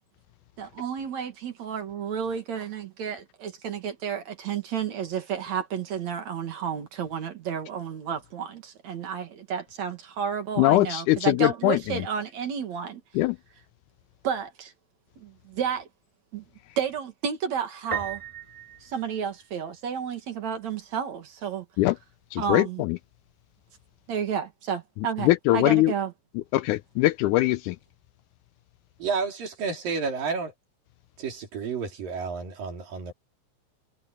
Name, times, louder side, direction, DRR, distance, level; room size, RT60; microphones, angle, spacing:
voice 1, 0.6-13.0 14.2-14.7 15.2-15.9 16.3-16.4 16.8-18.2 18.8-21.7 22.4-22.8 24.1-26.1, right 7 dB, 60° right, 2.8 m, -31 dB
voice 2, 10.6-12.0 13.1-13.4 21.8-22.0 22.3-23.0 25.2-25.9 26.3-27.8, left 17 dB, 85° left, 1.8 m, -22 dB
Piano, 17.9-19.7, right 6 dB, 10° right, 2.1 m, -36 dB
voice 3, 29.0-30.5 31.2-33.1, right 5 dB, 80° right, 5.6 m, -31 dB
omnidirectional pair, 4.0 m